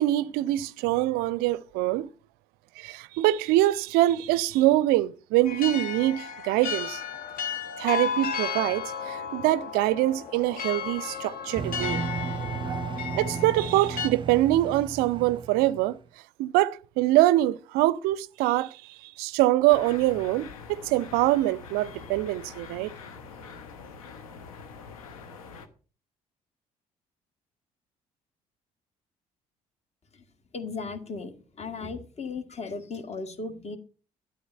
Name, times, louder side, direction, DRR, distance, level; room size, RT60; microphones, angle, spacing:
voice 1, 0.0-2.1 2.8-7.0 7.8-12.0 13.2-16.0 16.4-18.8 19.0-22.9, right 16 dB, 60° right, 0.4 m, -24 dB
sound 1, 5.4-14.1, left 6 dB, 50° left, 1.4 m, -34 dB
sound 2, 11.6-16.0, right 6 dB, 25° right, 0.7 m, -34 dB
sound 3, 19.7-25.7, left 5 dB, 75° left, 1.1 m, -44 dB
voice 2, 30.5-33.8, left 4 dB, 35° left, 1.8 m, -36 dB
12.0 x 8.7 x 5.5 m
figure-of-eight pair, 50°, 18 cm